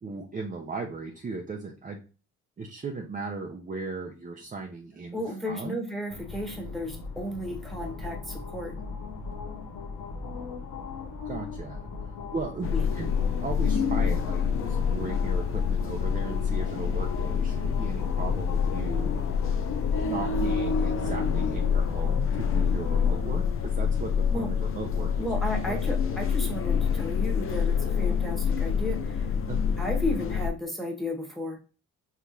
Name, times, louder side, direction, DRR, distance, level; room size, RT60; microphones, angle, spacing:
voice 1, 0.0-2.0 2.6-5.8 11.2-19.2 20.0-23.4 23.8-25.3 25.7-26.2 29.5-29.6, right 4 dB, 25° right, 1 dB, 0.7 m, -37 dB
voice 2, 5.1-8.7 12.7-12.8 24.3-24.5 25.2-29.3 29.8-31.6, left 1 dB, ahead, 1 dB, 1.4 m, -34 dB
sound 1, 6.1-25.6, left 3 dB, 90° left, 0.9 m, -36 dB
sound 2, 12.6-30.5, left 7 dB, 45° left, 0.6 m, -27 dB
4.8 x 3.3 x 2.7 m, 0.35 s
cardioid pair, 90°, 30 cm